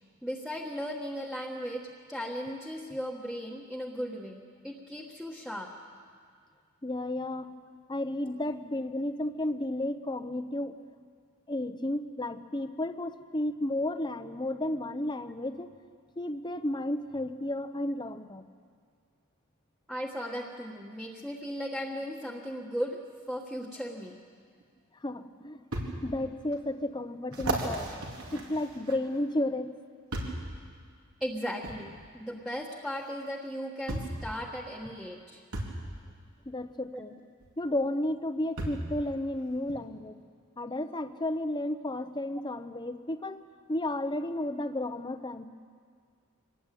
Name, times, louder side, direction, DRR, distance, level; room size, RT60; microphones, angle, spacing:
voice 1, 0.2-5.7 19.9-24.2 31.2-35.4 36.9-37.1, equal, ahead, -3 dB, 1.4 m, -37 dB
voice 2, 6.8-7.5 7.9-10.8 11.5-15.7 16.2-18.4 25.0-25.6 26.0-27.9 28.3-29.7 36.5-37.2 37.6-40.2 40.6-45.5, left 1 dB, 20° left, 10 dB, 0.9 m, -33 dB
sound 1, 24.6-24.7 25.7-25.9 26.5-26.6 27.3-29.2 30.1-30.5 31.6-31.8 33.1-33.2 33.9-34.2 35.5-35.8 37.4-37.5 38.6-38.9 39.7-39.8, right 1 dB, 85° right, 3.9 m, -34 dB
25.0 x 19.5 x 9.2 m, 2.1 s
head